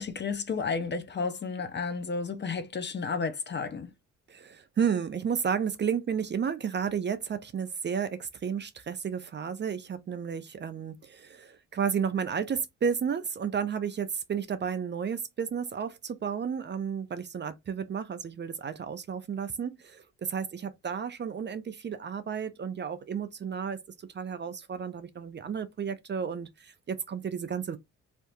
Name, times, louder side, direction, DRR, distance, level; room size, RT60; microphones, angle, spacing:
voice 1, 0.0-3.9, left 5 dB, 35° left, 0.8 m, -32 dB
voice 2, 4.3-23.8 24.1-27.8, right 7 dB, 35° right, 0.6 m, -32 dB
3.5 x 2.7 x 2.5 m
cardioid pair, 90°, 30 cm